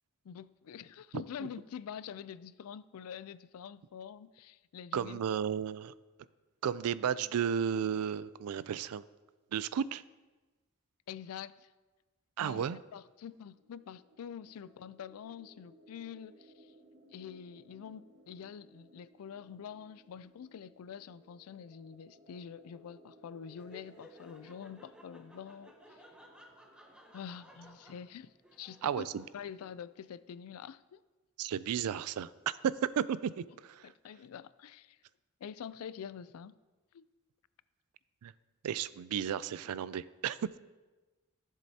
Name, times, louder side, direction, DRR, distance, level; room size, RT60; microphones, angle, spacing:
voice 1, 0.2-5.2 11.1-11.7 12.4-16.7 17.1-26.0 27.1-29.1 29.3-31.0 33.8-35.0 35.4-36.5 36.9-37.0, left 8 dB, 75° left, 0.3 m, -46 dB
voice 2, 1.1-1.5 4.9-5.9 6.6-9.0 9.5-10.0 12.4-12.8 28.8-29.2 31.4-32.3 33.0-33.9 38.2-38.3 38.6-40.6, right 8 dB, 80° right, 0.3 m, -34 dB
sound 1, 13.4-29.0, right 1 dB, 50° right, 1.3 m, -62 dB
Laughter, 23.5-30.1, equal, 5° right, 0.8 m, -58 dB
14.5 x 7.5 x 2.8 m
head